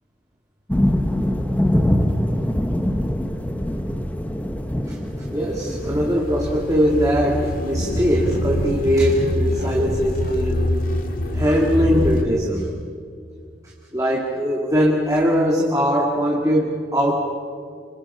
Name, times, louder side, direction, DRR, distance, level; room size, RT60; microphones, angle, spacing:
sound 1, 0.7-6.1, left 1 dB, 10° left, 1.0 m, -23 dB
sound 2, 5.2-12.2, left 1 dB, 50° left, 2.1 m, -25 dB
voice 1, 5.3-10.9 11.3-12.7 13.9-17.2, equal, 15° right, -2 dB, 2.1 m, -21 dB
27.0 x 26.0 x 5.5 m, 2.2 s
head